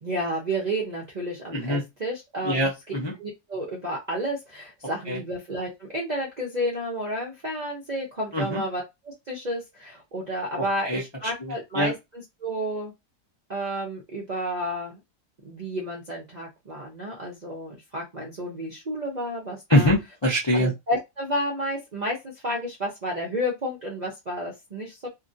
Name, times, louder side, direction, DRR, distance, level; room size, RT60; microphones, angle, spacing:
voice 1, 0.0-2.7 3.2-12.9 13.5-15.0 15.4-19.9 20.5-25.1, equal, 50° right, -2 dB, 0.5 m, -31 dB
voice 2, 1.5-1.8 2.4-3.1 5.1-5.2 8.3-8.6 10.9-11.0 11.4-11.9 19.7-20.7, equal, 40° left, -4 dB, 0.4 m, -23 dB
2.8 x 2.6 x 2.6 m, 0.21 s
omnidirectional pair, 1.7 m